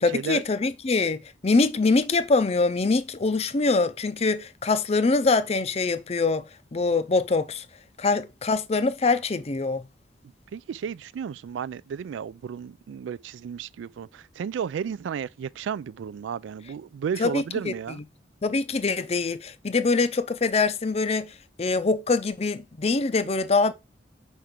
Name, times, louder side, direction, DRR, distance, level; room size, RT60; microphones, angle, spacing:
voice 1, 0.0-7.7 8.0-9.9 17.2-17.7 18.4-23.7, left 3 dB, 35° left, 0.5 m, -24 dB
voice 2, 10.5-18.0, right 7 dB, 85° right, 0.3 m, -33 dB
4.8 x 4.4 x 5.1 m
head